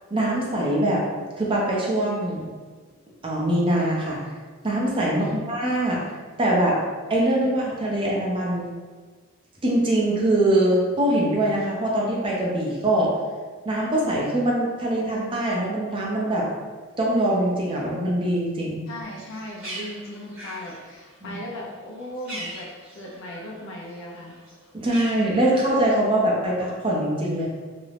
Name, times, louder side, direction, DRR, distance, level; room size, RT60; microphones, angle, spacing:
voice 1, 0.1-1.0 1.4-2.5 3.2-4.2 4.6-6.0 6.4-6.8 7.1-8.6 9.6-13.1 13.7-16.5 17.0-18.8 21.2-21.3 24.7-27.5, right 1 dB, 25° right, -4 dB, 0.5 m, -23 dB
voice 2, 18.9-22.7 22.9-24.4, left 1 dB, 55° left, -3 dB, 0.4 m, -37 dB
Bird, 19.0-23.6 24.0-25.9, right 1 dB, 40° right, 1.0 m, -40 dB
2.4 x 2.0 x 3.2 m, 1.4 s
head